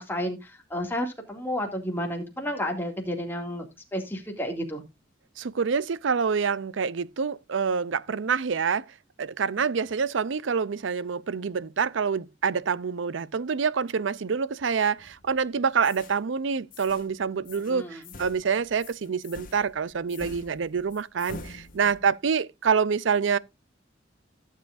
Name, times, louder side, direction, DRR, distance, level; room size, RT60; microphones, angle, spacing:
voice 1, 0.0-3.7 3.9-4.8 17.7-18.0, equal, 10° left, 2.3 m, -31 dB
voice 2, 5.4-8.9 9.2-23.4, right 6 dB, 80° right, 0.5 m, -26 dB
sound 1, 15.0-15.4 15.8-16.2 16.7-17.1 17.4-17.7 18.0-22.1, left 2 dB, 50° left, 1.9 m, -45 dB
16.0 x 7.5 x 2.5 m
head